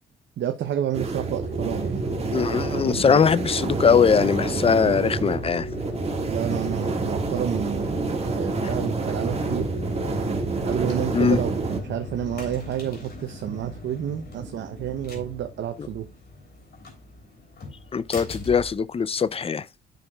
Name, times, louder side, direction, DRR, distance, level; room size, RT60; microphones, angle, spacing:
voice 1, 0.4-2.1 2.9-3.2 6.3-8.0 8.4-9.7 10.6-16.1, right 10 dB, 65° right, 0.8 m, -30 dB
sound 1, 0.9-11.8, right 3 dB, 30° right, 1.8 m, -28 dB
sound 2, 1.4-19.5, left 2 dB, 55° left, 3.3 m, -40 dB
voice 2, 2.3-5.7 11.1-11.4 17.9-19.7, left 6 dB, 30° left, 0.5 m, -21 dB
10.5 x 6.3 x 2.3 m
cardioid pair, 90°, 20 cm